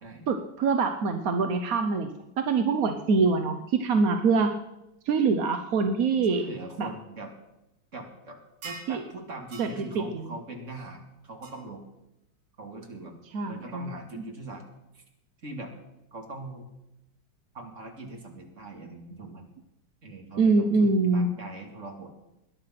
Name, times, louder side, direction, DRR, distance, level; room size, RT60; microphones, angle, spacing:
voice 1, 0.3-4.5 5.1-6.4 6.8-6.9 8.9-9.0 9.6-9.7 9.9-10.2 13.3-13.9 20.4-21.3, right 4 dB, 55° right, 7 dB, 1.0 m, -24 dB
voice 2, 6.3-7.3 7.9-8.4 8.6-11.8 12.6-13.2 13.5-14.6 14.9-15.0 15.4-15.7 16.1-16.7 17.5-19.5 20.0-22.2, right 2 dB, 35° right, 2 dB, 2.6 m, -41 dB
sound 1, 8.6-9.0 9.5-9.8 11.4-11.5, right 4 dB, 80° right, 3.0 m, -41 dB
20.5 x 10.5 x 5.9 m, 0.90 s
omnidirectional pair, 2.4 m